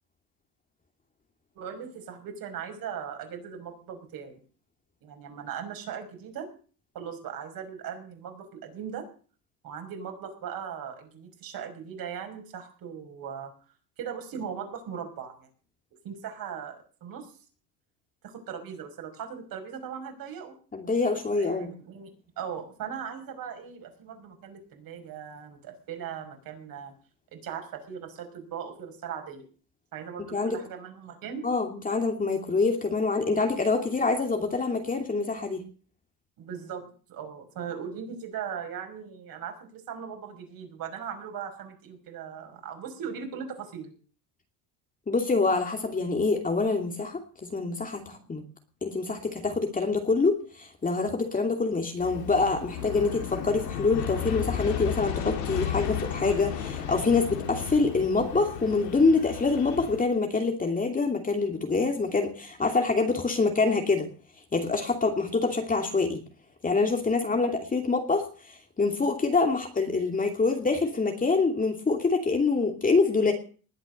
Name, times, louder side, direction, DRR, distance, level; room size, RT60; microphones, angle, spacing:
voice 1, 1.6-4.3 5.0-6.5 6.9-9.0 9.6-13.5 14.0-15.5 16.0-17.3 18.2-20.5 21.4-22.1 22.4-26.9 27.3-29.5 29.9-31.4 36.4-43.9 48.1-48.2, right 7 dB, 45° right, 4 dB, 5.7 m, -39 dB
voice 2, 20.7-21.7 30.2-30.6 31.4-35.6 45.1-47.2 47.5-48.4 48.8-64.1 64.5-66.2 66.6-73.3, left 3 dB, 15° left, 4 dB, 2.6 m, -26 dB
Aircraft, 52.0-60.0, left 8 dB, 80° left, 4.2 m, -34 dB
20.5 x 8.1 x 6.6 m, 0.40 s
supercardioid pair, 105°, 47 cm